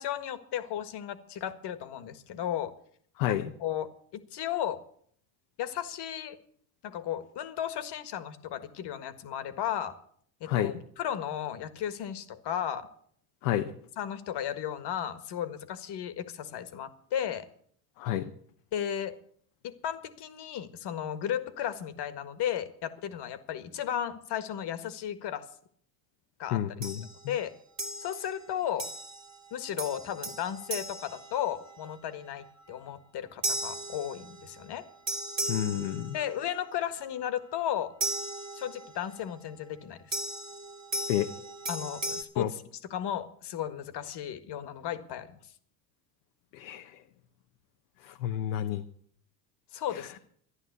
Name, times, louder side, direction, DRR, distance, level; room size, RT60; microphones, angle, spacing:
voice 1, 0.0-2.7 3.3-4.8 5.6-6.4 6.8-10.0 10.4-12.9 14.0-17.5 18.7-19.2 19.6-25.5 26.4-26.6 27.3-27.5 28.0-28.9 29.5-34.8 36.1-37.9 38.5-40.1 41.7-42.6 42.9-45.4 49.7-50.2, left 10 dB, 55° left, 12 dB, 1.7 m, -34 dB
voice 2, 3.2-3.5 10.5-10.7 13.4-13.7 18.0-18.3 26.5-27.1 35.5-36.2 41.1-41.3 42.4-42.5 46.5-46.9 48.0-48.8 49.9-50.1, left 12 dB, 85° left, 6 dB, 1.0 m, -30 dB
sound 1, 26.8-27.2 27.8-28.4 28.8-29.4 29.8-31.9 33.4-34.6 35.1-36.5 38.0-39.0 40.1-42.2, right 2 dB, 35° right, 1.9 m, -36 dB
13.0 x 10.5 x 8.2 m, 0.62 s
supercardioid pair, 100°, 50 cm